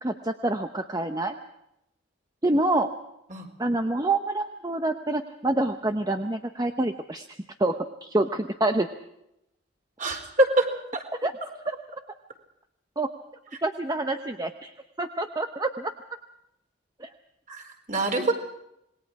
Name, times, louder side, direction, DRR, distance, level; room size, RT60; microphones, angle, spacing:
voice 1, 0.0-1.4 2.4-2.9 3.6-7.3 7.6-8.9 11.2-11.3 11.7-11.8 13.0-13.1 13.6-14.7 15.0-15.9 17.0-17.1, right 2 dB, 20° right, 6 dB, 0.9 m, -27 dB
voice 2, 10.0-10.7 10.9-11.0 17.5-18.3, right 2 dB, 40° right, 3 dB, 4.2 m, -24 dB
27.0 x 21.0 x 4.8 m, 0.83 s
head